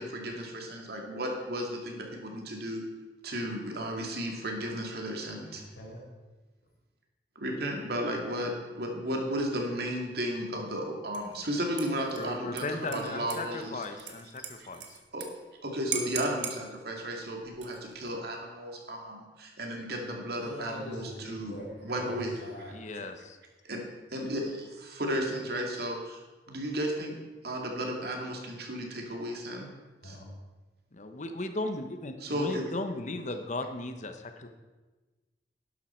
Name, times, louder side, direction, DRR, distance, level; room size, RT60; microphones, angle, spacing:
voice 1, 0.0-2.8 3.2-5.6 7.4-13.8 14.6-14.7 15.1-15.3 15.6-21.6 21.8-22.3 22.9-23.0 23.6-23.8 24.1-26.2 26.5-27.1 27.4-29.7 30.0-30.2 32.2-32.7, equal, 60° right, 1 dB, 2.4 m, -34 dB
voice 2, 5.5-6.0 20.4-22.7 30.0-30.3, equal, 80° left, -3 dB, 4.6 m, -42 dB
Dishes pots and pans / Liquid, 11.1-11.4 11.8-15.3 15.5-15.6 15.9-16.6 17.5-18.0, right 7 dB, 85° right, 1.4 m, -39 dB
voice 3, 12.1-15.0 22.7-23.4 30.9-34.5, left 2 dB, 40° left, 7 dB, 1.0 m, -36 dB
11.5 x 11.5 x 4.5 m, 1.2 s
head